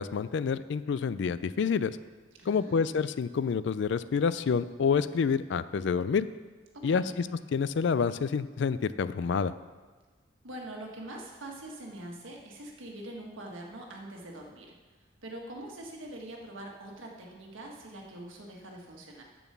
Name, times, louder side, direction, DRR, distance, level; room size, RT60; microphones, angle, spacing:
voice 1, 0.0-2.0 2.5-6.3 6.8-9.5, left 6 dB, 60° left, 15 dB, 0.3 m, -28 dB
voice 2, 2.4-2.9 6.7-7.1 10.4-14.8 15.2-19.2, right 1 dB, 75° right, 0 dB, 1.5 m, -43 dB
7.1 x 6.2 x 6.8 m, 1.3 s
head